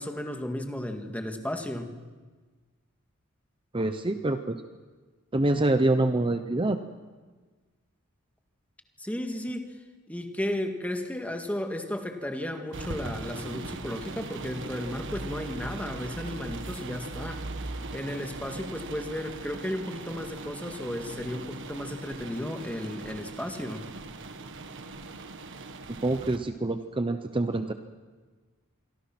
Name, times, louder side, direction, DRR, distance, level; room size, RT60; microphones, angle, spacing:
voice 1, 0.0-2.0 9.0-9.7 10.1-17.4 17.9-23.8, left 1 dB, 5° left, 4 dB, 1.9 m, -34 dB
voice 2, 3.7-4.6 5.3-6.8 26.0-27.7, right 2 dB, 25° right, 8 dB, 0.9 m, -26 dB
Rain on Car, 12.7-26.4, right 3 dB, 60° right, 1.5 m, -39 dB
26.5 x 24.0 x 6.0 m, 1.4 s
head